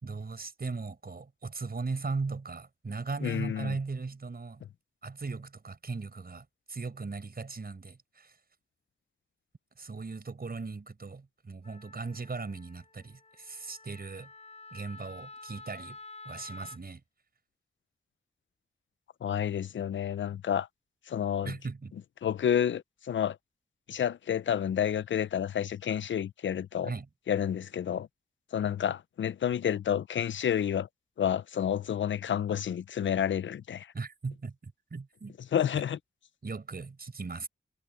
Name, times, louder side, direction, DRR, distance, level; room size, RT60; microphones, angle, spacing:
voice 1, 0.0-4.6 5.0-8.4 9.8-14.3 14.7-16.0 16.3-17.0 21.4-21.9 26.8-27.1 33.9-35.4 35.7-35.8 36.4-37.5, right 4 dB, 55° right, 5.3 m, -38 dB
voice 2, 3.2-3.7 19.2-20.7 21.1-21.5 22.2-23.4 23.9-26.9 27.3-28.1 28.5-30.9 31.2-33.9 35.5-36.0, left 9 dB, 80° left, 0.5 m, -29 dB
Wind instrument woodwind instrument, 11.6-16.8, left 3 dB, 35° left, 4.6 m, -49 dB
cardioid pair, 65°, 19 cm